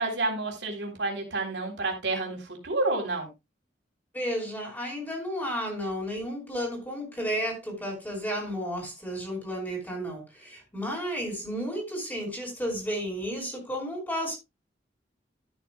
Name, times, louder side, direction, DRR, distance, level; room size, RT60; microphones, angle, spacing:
voice 1, 0.0-3.3, right 2 dB, 70° right, 3.7 m, -29 dB
voice 2, 4.1-14.4, equal, 10° left, 5.2 m, -32 dB
13.5 x 9.4 x 2.3 m
head